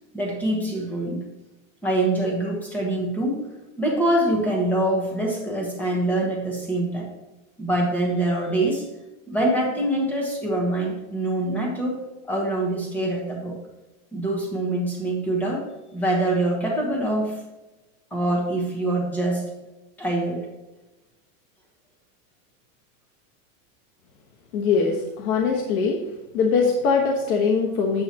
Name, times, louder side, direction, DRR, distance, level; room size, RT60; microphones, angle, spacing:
voice 1, 0.1-1.2 1.8-3.4 3.8-7.1 7.6-8.9 9.3-12.0 12.3-13.5 14.1-15.6 15.9-17.4 18.1-19.5 20.0-20.4, right 1 dB, 5° left, -1 dB, 1.1 m, -24 dB
voice 2, 24.5-26.0 26.3-28.0, left 5 dB, 80° left, 1 dB, 1.3 m, -22 dB
8.8 x 8.4 x 2.9 m, 1.0 s
supercardioid pair, 175°, 42 cm